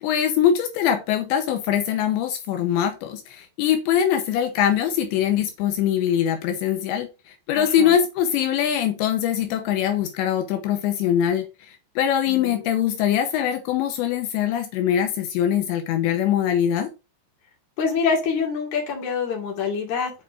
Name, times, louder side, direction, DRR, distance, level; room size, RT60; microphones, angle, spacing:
voice 1, 0.0-7.1 7.5-11.5 12.0-16.9, left 9 dB, 85° left, 3.2 m, -22 dB
voice 2, 7.6-8.0 12.3-12.6 17.8-20.1, left 5 dB, 45° left, 3.4 m, -26 dB
8.0 x 4.9 x 4.3 m
omnidirectional pair, 5.2 m